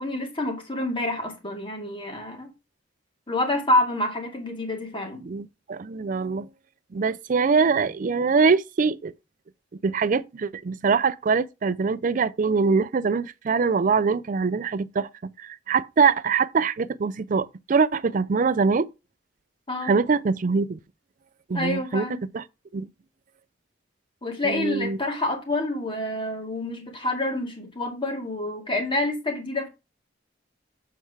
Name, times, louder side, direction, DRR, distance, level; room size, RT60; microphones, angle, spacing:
voice 1, 0.0-2.5 3.3-5.2 19.7-19.9 21.5-22.2 24.2-29.7, left 1 dB, 30° left, 2.1 m, -27 dB
voice 2, 5.2-6.5 6.9-9.1 9.8-15.1 15.4-18.9 19.8-20.8 21.5-22.1 22.3-22.4 22.7-22.9 24.4-25.0, right 5 dB, 45° right, 0.4 m, -23 dB
7.5 x 4.6 x 4.7 m
head